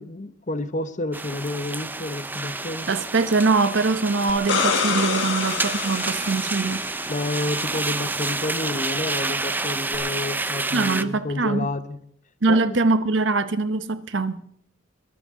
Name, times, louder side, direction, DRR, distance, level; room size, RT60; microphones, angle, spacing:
voice 1, 0.0-2.9 7.1-12.0 12.5-12.8, left 2 dB, 40° left, 0.9 m, -30 dB
sound 1, 1.1-11.0, right 3 dB, 10° right, 0.4 m, -29 dB
voice 2, 2.9-6.8 10.7-11.7 12.4-14.4, right 3 dB, 65° right, 0.9 m, -22 dB
sound 2, 4.3-7.1 9.9-10.0, left 5 dB, 65° left, 1.7 m, -26 dB
22.0 x 12.5 x 3.7 m
head